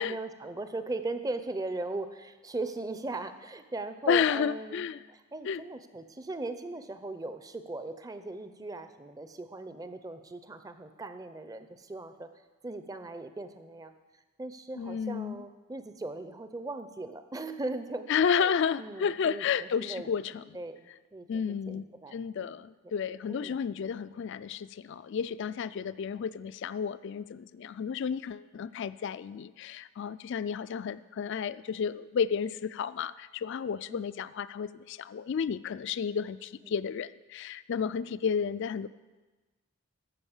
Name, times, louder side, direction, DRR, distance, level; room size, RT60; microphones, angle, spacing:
voice 1, 0.0-12.3 12.6-13.9 14.4-20.1 20.5-22.1 22.8-22.9 23.3-23.6 33.9-34.1 36.6-36.7, right 2 dB, 15° right, 9 dB, 0.5 m, -39 dB
voice 2, 4.1-5.0 5.4-5.6 14.8-15.4 18.1-20.4 21.3-38.9, left 7 dB, 55° left, 16 dB, 0.3 m, -31 dB
13.5 x 5.4 x 7.1 m, 1.2 s
head